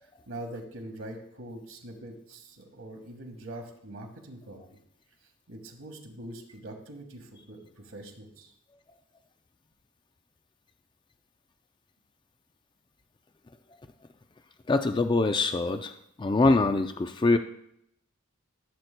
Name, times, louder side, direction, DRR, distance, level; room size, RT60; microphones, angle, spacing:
voice 1, 0.0-4.6 5.5-8.5, right 1 dB, 70° right, 2 dB, 1.6 m, -43 dB
voice 2, 14.7-15.9 16.2-17.4, left 3 dB, 20° left, 8 dB, 0.3 m, -24 dB
15.0 x 7.9 x 2.2 m, 0.75 s
head